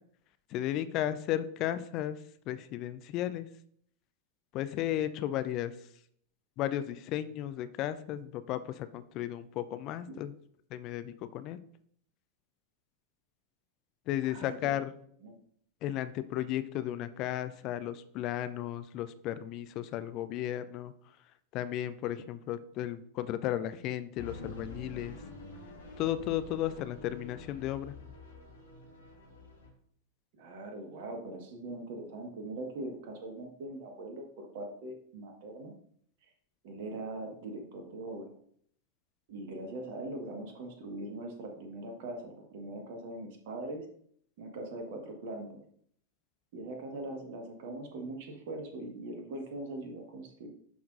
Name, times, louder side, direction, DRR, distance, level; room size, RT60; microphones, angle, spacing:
voice 1, 0.5-2.2 2.5-3.5 4.5-5.7 6.6-10.3 10.7-11.6 14.1-14.9 15.8-20.9 21.5-25.2 26.0-27.9, left 12 dB, 40° left, 13 dB, 0.5 m, -34 dB
voice 2, 14.2-14.8 15.2-15.4 30.4-35.7 36.2-36.3 36.6-38.3 39.3-43.8 44.4-45.6 46.5-50.5, right 2 dB, 50° right, 3 dB, 1.6 m, -41 dB
sound 1, 24.2-29.7, left 2 dB, 65° left, 2.2 m, -48 dB
11.0 x 5.8 x 2.6 m, 0.65 s
figure-of-eight pair, 90°, 0 cm